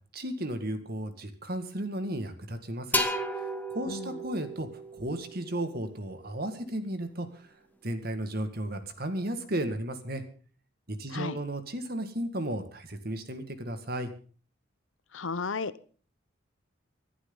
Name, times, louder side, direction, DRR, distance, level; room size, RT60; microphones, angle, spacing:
voice 1, 0.1-3.0 3.3-3.5 3.7-7.5 7.8-10.2 10.9-14.1, right 1 dB, 50° right, 9 dB, 1.9 m, -34 dB
sound 1, 2.9-6.6, left 1 dB, 10° left, 1.3 m, -34 dB
voice 2, 3.9-4.2 11.1-11.4 15.1-15.9, left 4 dB, 90° left, 16 dB, 0.9 m, -34 dB
25.5 x 11.0 x 3.9 m, 0.41 s
head